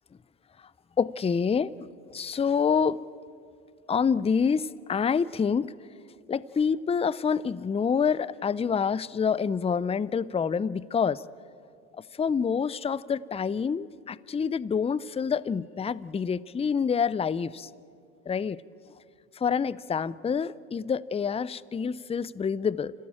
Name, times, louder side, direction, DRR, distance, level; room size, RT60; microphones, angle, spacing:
voice 1, 1.0-1.9 2.1-3.0 3.9-5.7 6.3-11.2 12.0-17.7 18.3-18.6 19.3-22.9, left 6 dB, 15° left, 20 dB, 0.5 m, -27 dB
27.5 x 16.0 x 8.7 m, 2.4 s
supercardioid pair, 75°, 42 cm